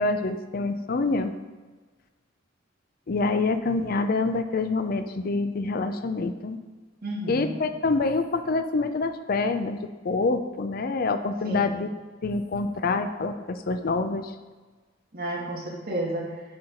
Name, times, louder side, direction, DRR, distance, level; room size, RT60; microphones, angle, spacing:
voice 1, 0.0-1.3 3.1-6.6 7.3-9.8 10.0-11.9 12.2-14.3, left 3 dB, 50° left, 9 dB, 0.5 m, -26 dB
voice 2, 7.0-7.5 11.4-11.8 15.1-16.3, right 1 dB, 50° right, -3 dB, 1.8 m, -31 dB
7.6 x 4.5 x 5.1 m, 1.4 s
head